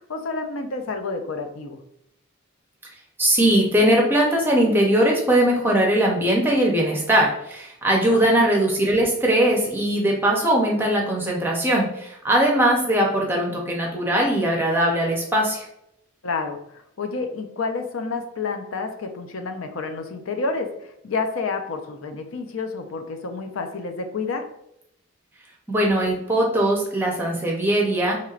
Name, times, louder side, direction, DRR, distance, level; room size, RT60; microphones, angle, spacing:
voice 1, 0.0-1.8 8.0-8.3 16.2-16.6 17.0-20.7 21.0-24.4, left 4 dB, 75° left, 6 dB, 0.5 m, -29 dB
voice 2, 3.2-15.7 25.7-28.2, right 1 dB, 10° right, -1 dB, 0.6 m, -20 dB
4.3 x 3.0 x 2.4 m, 0.76 s
head